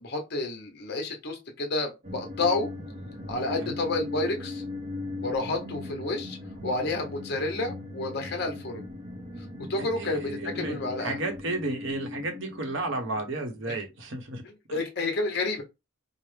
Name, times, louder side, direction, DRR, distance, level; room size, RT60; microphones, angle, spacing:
voice 1, 0.0-2.7 3.3-4.6 5.2-6.4 6.6-8.9 9.7-11.2 14.7-15.6, left 2 dB, 50° left, 0.9 m, -30 dB
sound 1, 2.0-14.0, left 2 dB, 30° right, 0.6 m, -39 dB
voice 2, 3.4-3.7 9.8-14.4 14.7-14.8, right 2 dB, 55° right, 0.8 m, -33 dB
4.7 x 2.0 x 3.3 m
head